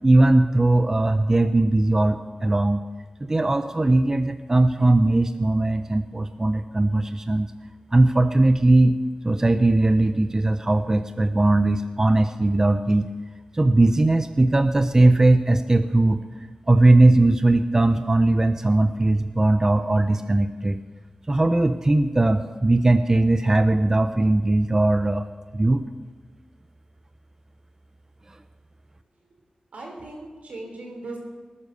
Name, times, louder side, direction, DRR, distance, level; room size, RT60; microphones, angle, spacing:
voice 1, 0.0-2.8 3.2-7.5 7.9-9.0 9.2-13.1 13.5-16.2 16.7-20.8 21.3-25.3 25.5-25.8, right 2 dB, 25° right, 9 dB, 0.6 m, -19 dB
voice 2, 29.7-31.2, right 2 dB, 80° right, 1 dB, 4.2 m, -38 dB
19.0 x 9.7 x 6.7 m, 1.3 s
wide cardioid pair, 110°, 2 cm